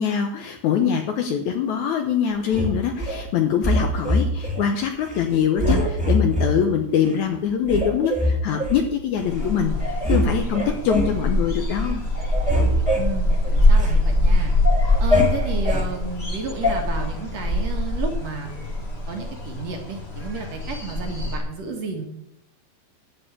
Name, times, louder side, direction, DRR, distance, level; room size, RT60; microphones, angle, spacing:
voice 1, 0.0-12.0, left 8 dB, 70° left, 5 dB, 1.9 m, -23 dB
sound 1, 2.5-3.2 3.6-4.6 5.0-5.2 5.6-6.5 7.1-7.2 7.6-8.8 9.4-9.5 9.8-10.2 10.5-11.2 11.6-11.9 12.1-13.9 14.3-15.8 16.6-16.8, left 1 dB, 5° right, 1.8 m, -23 dB
sound 2, 9.2-21.4, left 1 dB, 30° left, 1.3 m, -23 dB
voice 2, 13.0-14.5 15.0-18.5 19.0-22.1, right 4 dB, 55° right, 2 dB, 2.4 m, -32 dB
12.5 x 4.8 x 8.6 m, 0.81 s
omnidirectional pair, 4.1 m